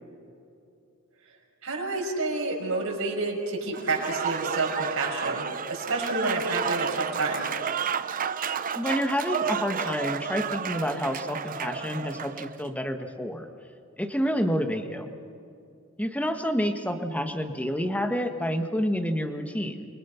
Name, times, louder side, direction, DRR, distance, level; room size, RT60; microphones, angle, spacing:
voice 1, 1.6-7.5, right 2 dB, 75° right, -1 dB, 6.3 m, -29 dB
Applause / Crowd, 3.7-12.6, right 7 dB, 40° right, 0.7 m, -31 dB
voice 2, 8.7-13.5 14.0-15.1 16.0-19.8, equal, 5° left, 6 dB, 1.5 m, -28 dB
29.0 x 23.5 x 5.8 m, 2.5 s
head